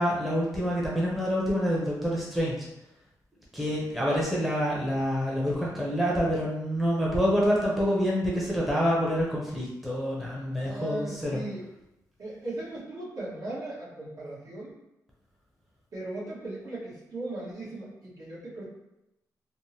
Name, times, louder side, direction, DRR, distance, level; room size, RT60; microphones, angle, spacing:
voice 1, 0.0-2.7 3.5-11.4, equal, ahead, -5 dB, 0.7 m, -27 dB
voice 2, 10.6-11.7 12.2-14.7 15.9-18.6, right 2 dB, 60° right, -8 dB, 1.3 m, -38 dB
3.4 x 2.1 x 2.8 m, 0.88 s
cardioid pair, 80°, 7 cm